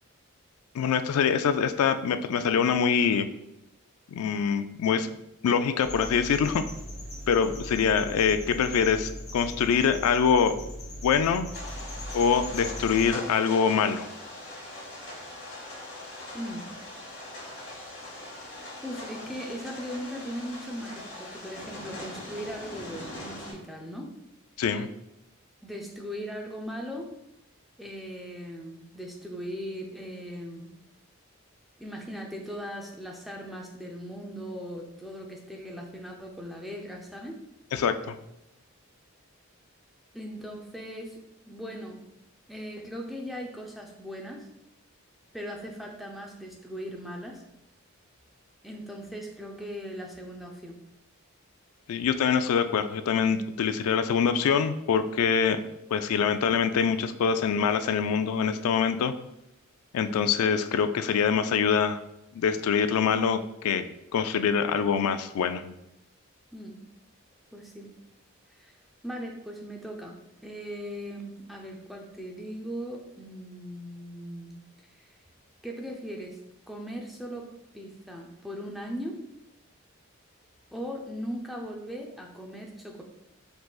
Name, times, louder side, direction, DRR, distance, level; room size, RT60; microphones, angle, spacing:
voice 1, 0.7-3.3 4.1-5.1 5.4-6.6 7.3-10.6 11.0-11.5 12.1-14.1 24.6-24.9 37.7-38.2 51.9-55.6 55.9-59.1 59.9-62.0 62.3-63.8 64.1-65.7, left 6 dB, 85° left, 11 dB, 0.3 m, -24 dB
sound 1, 5.8-13.1, equal, 30° left, 1.0 m, -39 dB
sound 2, 11.5-23.5, left 1 dB, 50° left, 1.5 m, -41 dB
voice 2, 16.3-16.6 18.8-24.1 25.6-27.1 27.8-30.8 31.8-37.4 40.1-41.2 41.5-42.0 42.5-44.5 45.3-47.4 48.6-50.8 66.5-66.8 67.5-67.9 68.5-68.8 69.0-74.6 74.9-75.2 75.6-76.4 76.7-77.5 77.7-79.2 80.7-83.0, equal, ahead, 0 dB, 0.4 m, -39 dB
4.6 x 3.8 x 2.3 m, 0.84 s
head